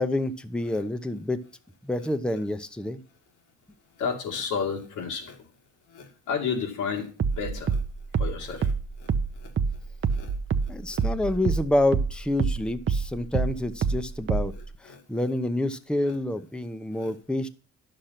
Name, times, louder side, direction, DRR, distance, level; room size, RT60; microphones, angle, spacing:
voice 1, 0.0-1.4 1.8-3.0 10.7-14.5 14.8-17.5, left 1 dB, 5° left, 10 dB, 0.8 m, -28 dB
voice 2, 4.0-5.4 5.9-7.8 8.2-8.7 9.0-9.1 9.4-9.5 10.1-10.3 10.9-11.0 14.9-15.0 16.1-16.2 17.0-17.1, left 6 dB, 85° left, 3 dB, 2.4 m, -32 dB
sound 1, 7.2-12.1 12.4-14.6, right 5 dB, 40° right, 0.8 m, -26 dB
10.5 x 6.7 x 5.8 m, 0.36 s
cardioid pair, 90°, 30 cm